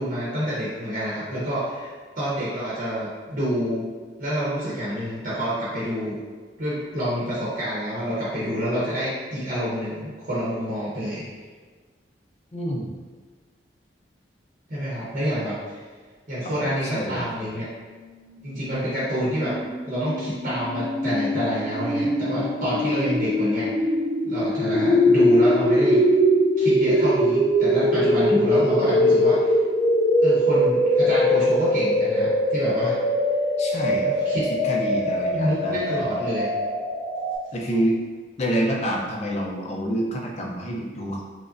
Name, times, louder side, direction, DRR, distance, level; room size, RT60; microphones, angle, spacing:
voice 1, 0.0-3.9 4.2-6.2 6.6-11.2 14.7-15.8 16.3-17.6 18.4-19.5 19.8-23.7 24.2-26.0 26.6-29.5 30.2-33.0 34.2-34.4 35.3-36.5, equal, 45° right, -9 dB, 0.9 m, -27 dB
voice 2, 12.5-13.0 16.4-17.3 33.6-34.2 34.5-36.2 37.5-38.0 38.4-41.2, equal, 35° left, -1 dB, 0.5 m, -28 dB
sound 1, 18.2-37.4, equal, 60° left, 1.0 m, -22 dB
4.7 x 2.1 x 2.5 m, 1.5 s
head